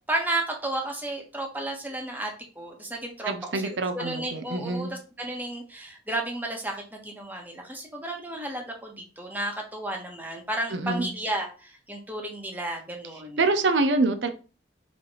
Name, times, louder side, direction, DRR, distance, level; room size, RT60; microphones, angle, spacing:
voice 1, 0.1-13.4, right 1 dB, 10° right, 1 dB, 1.4 m, -33 dB
voice 2, 3.3-4.9 10.7-11.1 13.4-14.3, right 3 dB, 80° right, 8 dB, 0.7 m, -25 dB
5.0 x 3.4 x 5.5 m, 0.35 s
head